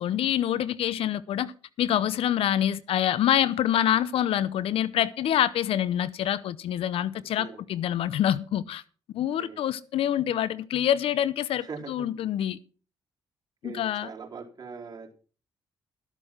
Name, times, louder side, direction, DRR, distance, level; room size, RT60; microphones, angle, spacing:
voice 1, 0.0-1.5 1.8-8.8 9.1-12.6 13.6-14.1, left 11 dB, 70° left, 0.7 m, -26 dB
voice 2, 13.6-15.1, right 5 dB, 40° right, 3.8 m, -41 dB
13.0 x 8.2 x 5.8 m
supercardioid pair, 55°, 10 cm